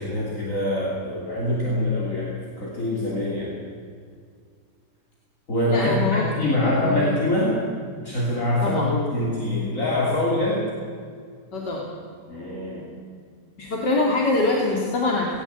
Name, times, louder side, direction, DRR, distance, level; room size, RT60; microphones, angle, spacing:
voice 1, 0.0-3.6 5.5-7.6 8.0-10.6 12.3-12.8, left 1 dB, 50° left, -4 dB, 3.5 m, -24 dB
voice 2, 5.7-6.2 6.6-7.1 8.6-8.9 11.5-11.9 13.6-15.4, left 2 dB, 80° left, -2 dB, 3.1 m, -24 dB
18.5 x 18.0 x 8.2 m, 2.1 s
omnidirectional pair, 1.8 m